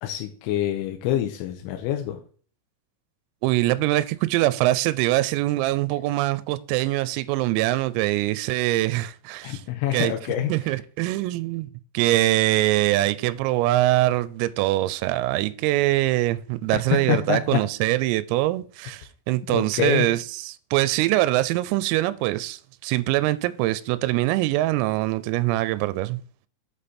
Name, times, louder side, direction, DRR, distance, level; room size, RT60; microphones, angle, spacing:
voice 1, 0.0-2.2 9.4-10.5 17.1-17.4 19.5-20.1, left 12 dB, 80° left, 3.2 m, -26 dB
voice 2, 3.4-9.6 9.9-10.1 10.5-11.7 11.9-26.2, right 17 dB, 85° right, 3.3 m, -23 dB
8.0 x 5.2 x 4.2 m
omnidirectional pair, 6.0 m